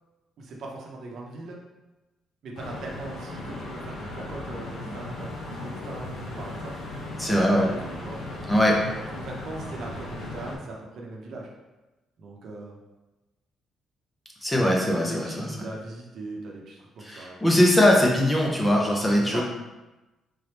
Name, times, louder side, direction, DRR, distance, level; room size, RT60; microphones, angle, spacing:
voice 1, 0.4-1.6 2.4-5.3 5.6-6.8 7.2-8.2 9.1-11.5 12.2-12.8 15.0-17.5 19.2-19.4, right 2 dB, 50° right, -1 dB, 0.7 m, -39 dB
sound 1, 2.5-10.6, left 2 dB, 75° left, 0.8 m, -37 dB
voice 2, 7.2-7.7 8.5-8.8 14.4-15.6 17.0-19.4, left 1 dB, 10° left, -2 dB, 0.5 m, -21 dB
3.7 x 3.0 x 3.3 m, 1.1 s
cardioid pair, 175°, 0 cm